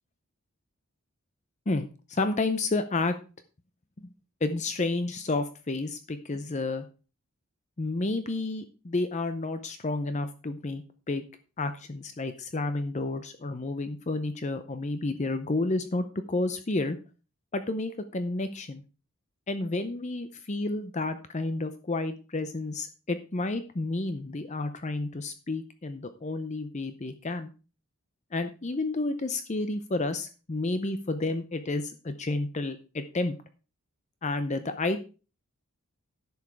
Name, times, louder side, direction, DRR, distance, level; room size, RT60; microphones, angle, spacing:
voice 1, 1.7-3.2 4.0-4.1 4.4-6.9 7.8-11.2 11.6-17.0 17.5-18.8 19.5-27.5 28.3-33.4 34.2-35.0, left 2 dB, 30° left, 10 dB, 0.6 m, -31 dB
11.0 x 7.1 x 4.7 m, 0.35 s
head